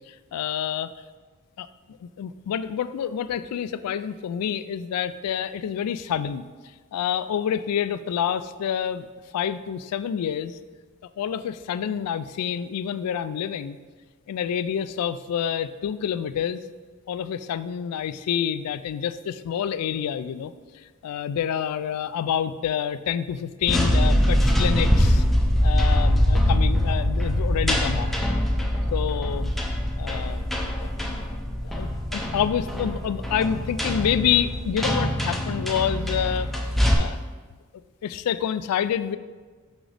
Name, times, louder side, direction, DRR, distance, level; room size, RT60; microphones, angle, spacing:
voice 1, 0.1-0.9 1.6-1.7 2.0-6.5 6.9-9.1 9.3-10.6 11.2-13.8 14.3-16.6 17.1-25.2 25.6-28.1 28.9-29.5 30.0-30.4 30.8-30.9 31.6-36.5 36.9-37.2 38.0-39.2, left 8 dB, 90° left, 15 dB, 0.3 m, -28 dB
sound 1, 23.6-36.9, equal, ahead, 0.5 m, -23 dB
6.2 x 6.1 x 3.3 m, 1.4 s
head